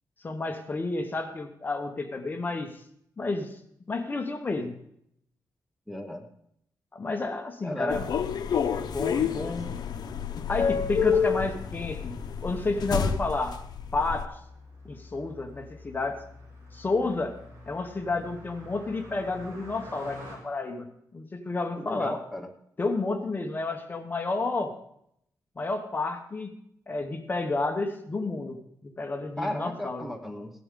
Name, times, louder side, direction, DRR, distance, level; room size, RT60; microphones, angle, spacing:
voice 1, 0.2-2.7 3.2-3.6 3.9-4.8 6.9-8.2 8.8-9.7 10.5-12.2 12.4-13.6 13.9-14.3 14.9-16.2 16.7-17.4 17.7-20.9 21.1-22.2 22.8-24.7 25.6-26.5 26.9-30.1, left 3 dB, 25° left, 5 dB, 1.0 m, -31 dB
voice 2, 5.9-6.3 7.6-8.0 9.3-9.5 21.8-22.5 29.4-30.5, left 1 dB, ahead, 2 dB, 0.9 m, -34 dB
sound 1, 7.9-14.2, left 7 dB, 70° left, 0.8 m, -29 dB
Car passing by, 10.3-20.4, left 1 dB, 40° right, 4.9 m, -49 dB
16.0 x 10.5 x 3.7 m, 0.72 s
wide cardioid pair, 160°, 7 cm